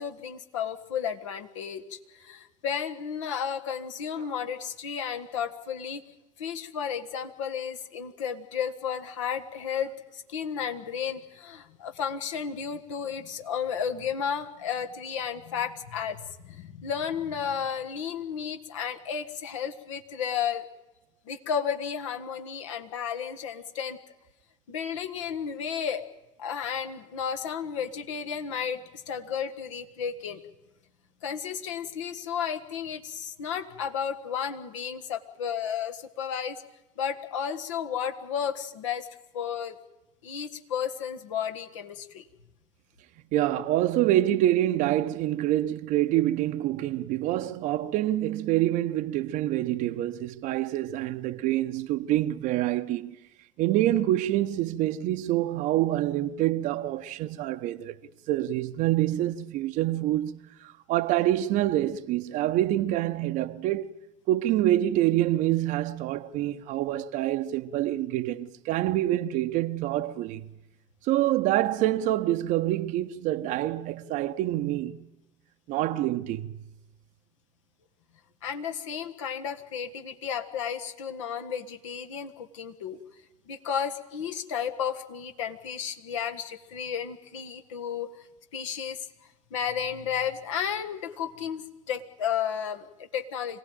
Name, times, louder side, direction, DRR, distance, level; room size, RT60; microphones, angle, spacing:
voice 1, 0.0-6.0 6.4-20.6 21.2-24.0 24.7-26.0 26.4-30.4 31.2-36.6 37.0-39.1 39.3-39.8 40.2-42.3 78.4-83.0 83.5-88.3 88.5-89.0 89.5-93.6, left 7 dB, 70° left, 1.5 m, -33 dB
voice 2, 43.3-53.2 53.6-57.9 58.3-63.9 64.3-70.5 71.0-75.1 75.7-76.5, right 14 dB, 55° right, 0.7 m, -26 dB
26.0 x 17.5 x 9.0 m
figure-of-eight pair, 60°, 16 cm